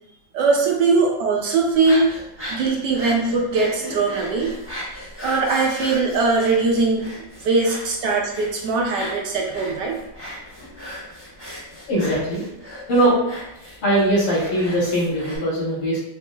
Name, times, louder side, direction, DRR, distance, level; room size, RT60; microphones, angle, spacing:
voice 1, 0.3-2.1 2.5-4.5 5.2-7.0 7.4-10.0, right 3 dB, 75° right, 0 dB, 1.1 m, -20 dB
sound 1, 1.7-15.4, equal, 10° right, 0.6 m, -37 dB
voice 2, 11.9-12.5 12.9-13.2 13.8-16.0, right 1 dB, 85° left, -7 dB, 2.3 m, -20 dB
5.9 x 2.0 x 2.2 m, 0.86 s
omnidirectional pair, 2.1 m